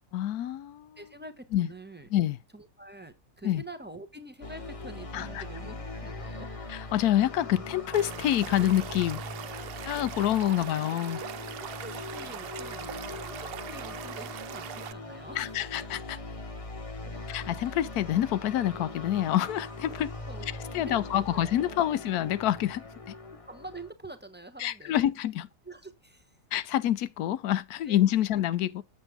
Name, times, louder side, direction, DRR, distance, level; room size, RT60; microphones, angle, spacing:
voice 1, 0.1-1.0 1.5-1.7 2.1-2.4 3.4-3.6 5.1-5.4 6.9-9.2 9.8-11.2 15.4-16.2 17.3-20.1 20.7-23.1 24.6-25.5 26.5-28.8, left 12 dB, 90° left, 1.2 m, -27 dB
voice 2, 1.0-2.1 2.5-6.5 10.9-11.0 11.6-15.6 17.1-17.2 20.3-21.8 23.3-25.1 25.6-26.4 27.9-28.1, right 2 dB, 10° right, 0.9 m, -46 dB
sound 1, 4.4-23.9, left 2 dB, 25° left, 1.0 m, -41 dB
Stream / Liquid, 7.9-14.9, right 10 dB, 70° right, 0.5 m, -41 dB
8.0 x 7.3 x 3.5 m
omnidirectional pair, 1.6 m